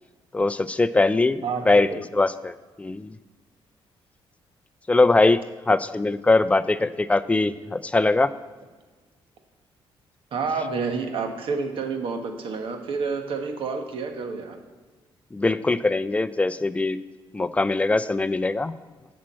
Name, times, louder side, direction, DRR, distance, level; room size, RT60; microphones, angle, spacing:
voice 1, 0.3-3.1 4.9-5.4 5.7-8.3 15.3-17.0 17.3-18.7, left 3 dB, 15° left, 14 dB, 0.4 m, -21 dB
voice 2, 1.4-2.0 10.3-14.6, right 4 dB, 65° right, 5 dB, 1.4 m, -29 dB
8.3 x 6.2 x 7.5 m, 1.3 s
cardioid pair, 105°, 10 cm